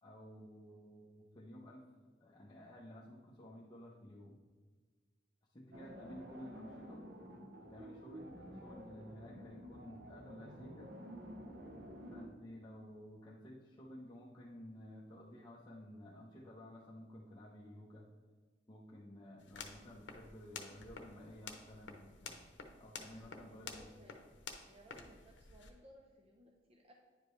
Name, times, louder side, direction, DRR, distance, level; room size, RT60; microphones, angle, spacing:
voice 1, 0.0-1.9 2.2-4.4 5.5-7.0 7.6-10.9 12.1-18.1 18.7-22.5 22.8-23.9, left 1 dB, 25° left, -6 dB, 0.8 m, -53 dB
sound 1, 5.7-12.3, equal, 65° right, 1.0 m, -51 dB
sound 2, 19.4-25.7, left 5 dB, 75° left, 0.9 m, -51 dB
voice 2, 23.1-24.2 24.7-26.9, equal, 35° right, 0 dB, 0.7 m, -61 dB
9.7 x 5.1 x 3.1 m, 1.4 s
head